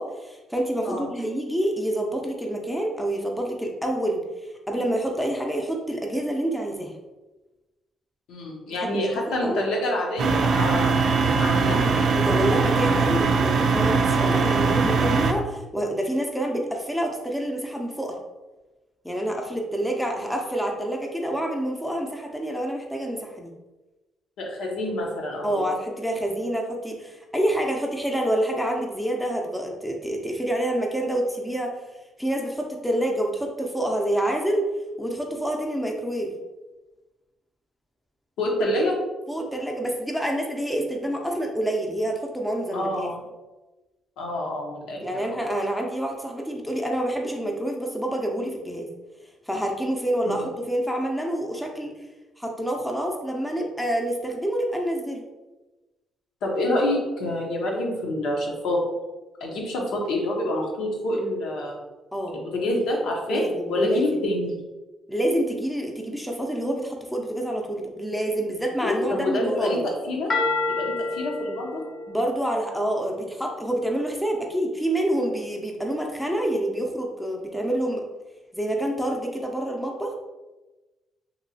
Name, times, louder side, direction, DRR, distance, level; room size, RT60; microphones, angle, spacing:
voice 1, 0.0-4.2 4.7-6.9 8.7-9.1 9.4-9.6 12.1-18.2 19.0-23.5 25.4-31.7 32.2-34.7 35.0-36.3 39.3-43.1 45.0-48.9 49.5-51.9 52.4-55.2 62.1-62.4 63.3-64.3 65.1-69.8 72.1-78.0 78.5-80.1, right 1 dB, 5° left, 1 dB, 0.5 m, -27 dB
voice 2, 8.3-11.0 11.4-12.1 24.4-25.5 38.4-39.0 42.7-43.2 44.2-45.0 45.3-45.4 50.2-50.5 56.4-58.8 59.4-61.7 62.3-64.5 68.8-69.8 70.1-70.3 70.7-71.8, left 1 dB, 85° left, -1 dB, 0.8 m, -27 dB
sound 1, 10.2-15.3, right 4 dB, 65° right, 0.3 m, -21 dB
sound 2, 70.3-73.5, left 3 dB, 50° left, 0.7 m, -30 dB
3.0 x 2.7 x 2.7 m, 1.1 s
cardioid pair, 90°, 0 cm